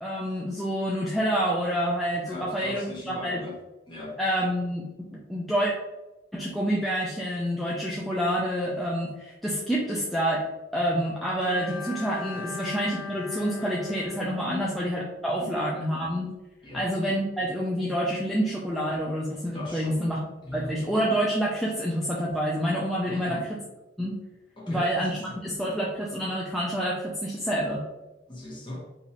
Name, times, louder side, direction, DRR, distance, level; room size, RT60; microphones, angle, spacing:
voice 1, 0.0-3.4 4.2-5.7 6.3-10.4 10.7-16.3 16.7-20.2 20.5-23.6 24.0-24.2 24.7-27.8, equal, ahead, -5 dB, 0.4 m, -28 dB
voice 2, 2.3-3.6 3.9-4.2 12.3-12.5 14.4-14.8 15.4-15.6 16.6-16.9 19.5-20.1 20.4-20.7 23.0-23.5 24.6-25.4 28.3-28.8, left 2 dB, 25° left, -4 dB, 1.0 m, -39 dB
Bowed string instrument, 11.4-15.4, left 3 dB, 50° left, 0.7 m, -39 dB
4.1 x 2.6 x 2.9 m, 1.0 s
head